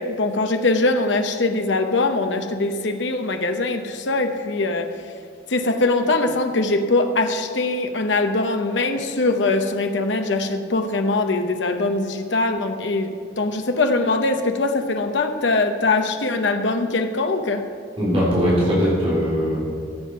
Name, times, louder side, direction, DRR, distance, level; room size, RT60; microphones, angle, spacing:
voice 1, 0.0-4.9 5.5-17.6, left 2 dB, 75° left, 6 dB, 0.8 m, -22 dB
voice 2, 18.0-19.6, equal, 30° right, -7 dB, 3.4 m, -20 dB
15.0 x 7.7 x 5.5 m, 2.2 s
head